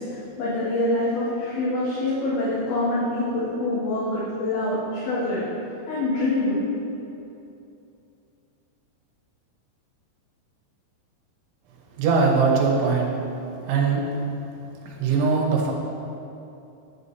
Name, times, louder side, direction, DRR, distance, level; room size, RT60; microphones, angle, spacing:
voice 1, 0.0-5.4 5.9-6.6, left 2 dB, 75° left, -12 dB, 4.0 m, -25 dB
voice 2, 12.0-13.1 13.6-14.1 14.9-15.7, right 4 dB, 80° right, -1 dB, 3.3 m, -21 dB
11.0 x 8.3 x 2.7 m, 2.8 s
omnidirectional pair, 5.4 m